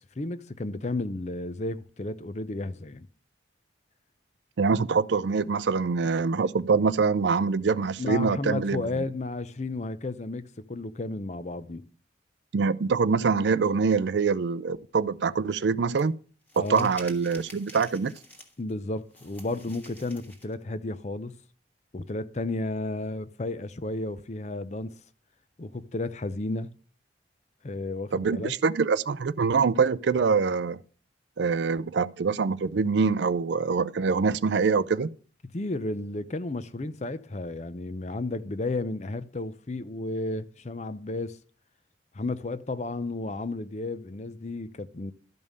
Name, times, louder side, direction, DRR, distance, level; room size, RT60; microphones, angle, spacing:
voice 1, 0.2-3.1 8.0-11.8 16.6-16.9 18.6-21.3 21.9-24.9 25.6-26.7 27.6-28.5 35.5-41.4 42.1-45.1, left 2 dB, 40° left, 0.6 m, -33 dB
voice 2, 4.6-9.1 12.5-16.1 16.6-18.1 28.1-30.8 31.4-35.1, right 5 dB, 70° right, 0.4 m, -24 dB
sound 1, 16.0-16.1 16.5-18.7 19.1-20.5, left 1 dB, 10° left, 1.5 m, -48 dB
12.5 x 5.4 x 6.4 m
head